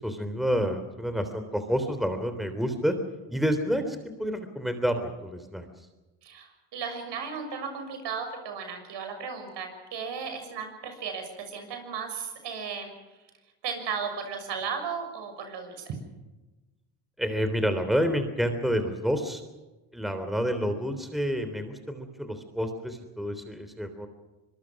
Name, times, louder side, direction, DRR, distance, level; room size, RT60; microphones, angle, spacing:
voice 1, 0.0-2.9 3.3-5.7 17.2-19.4 19.9-24.1, equal, ahead, 8 dB, 3.4 m, -29 dB
voice 2, 6.2-12.9 13.6-16.0, right 6 dB, 65° right, 6 dB, 6.6 m, -35 dB
25.0 x 21.5 x 6.1 m, 1.1 s
supercardioid pair, 75°, 45 cm